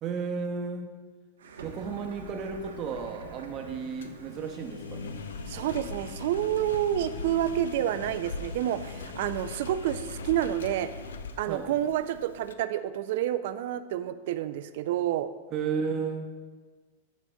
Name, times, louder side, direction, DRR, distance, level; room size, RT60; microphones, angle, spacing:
voice 1, 0.0-1.0 1.6-5.2 11.5-11.7 15.5-16.3, right 5 dB, 40° right, 5 dB, 0.7 m, -33 dB
sound 1, 1.4-10.5, right 4 dB, 85° right, 0.7 m, -49 dB
Engine, 1.7-12.5, left 4 dB, 85° left, 0.4 m, -41 dB
voice 2, 5.5-10.9 11.4-15.3, right 12 dB, 65° right, 12 dB, 0.3 m, -29 dB
9.3 x 5.0 x 2.3 m, 1.4 s
hypercardioid pair, 115°, 0 cm